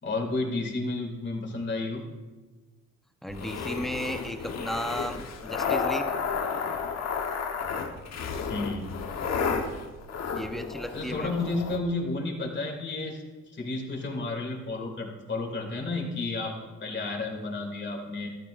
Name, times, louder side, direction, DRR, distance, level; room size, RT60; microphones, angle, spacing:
voice 1, 0.0-2.0 8.5-8.9 10.9-13.2 13.5-18.3, left 3 dB, 40° left, 1 dB, 2.7 m, -31 dB
voice 2, 3.2-6.1 10.3-11.3, equal, ahead, 6 dB, 0.9 m, -34 dB
sound 1, 3.3-11.8, left 5 dB, 60° left, 1.3 m, -32 dB
13.5 x 12.0 x 2.6 m, 1.2 s
cardioid pair, 90°, 30 cm